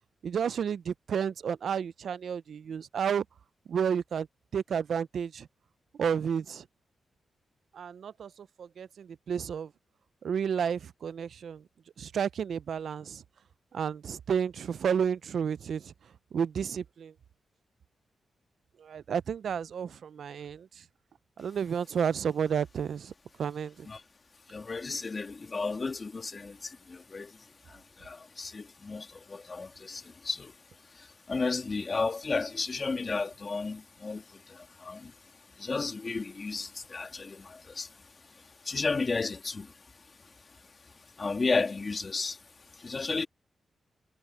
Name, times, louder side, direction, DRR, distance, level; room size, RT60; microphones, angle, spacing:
voice 1, 0.2-3.2 3.7-4.3 4.5-5.5 6.0-6.6 7.7-9.7 10.2-11.6 12.0-13.2 13.7-15.9 16.3-17.1 18.8-20.7 21.4-23.1 23.4-23.9, right 7 dB, 70° right, 0.5 m, -31 dB
voice 2, 24.5-26.6 26.9-27.3 28.0-30.5 31.3-34.2 34.8-35.1 35.6-37.9 38.7-39.7 41.2-42.4 42.8-43.3, left 4 dB, 35° left, 2.3 m, -33 dB
wide cardioid pair, 110°, 0 cm